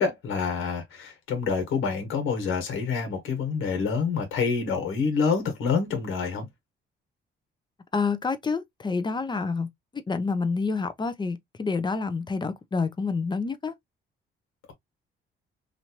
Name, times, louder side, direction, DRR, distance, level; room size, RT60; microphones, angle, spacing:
voice 1, 0.0-6.5, left 5 dB, 85° left, 1.5 m, -27 dB
voice 2, 7.9-9.7 10.1-13.7, left 4 dB, 20° left, 0.6 m, -28 dB
3.0 x 2.7 x 2.9 m
cardioid pair, 90°, 20 cm